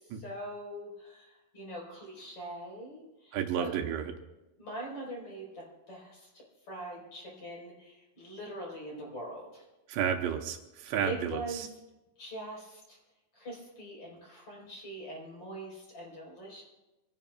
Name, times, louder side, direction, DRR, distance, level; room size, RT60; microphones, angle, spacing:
voice 1, 0.1-3.7 4.6-9.6 11.0-11.7 12.2-13.0 13.3-16.6, right 1 dB, 35° left, -3 dB, 5.1 m, -43 dB
voice 2, 3.3-4.1 9.9-11.7, right 9 dB, 80° right, 4 dB, 2.9 m, -32 dB
25.5 x 16.5 x 2.4 m, 1.0 s
omnidirectional pair, 5.1 m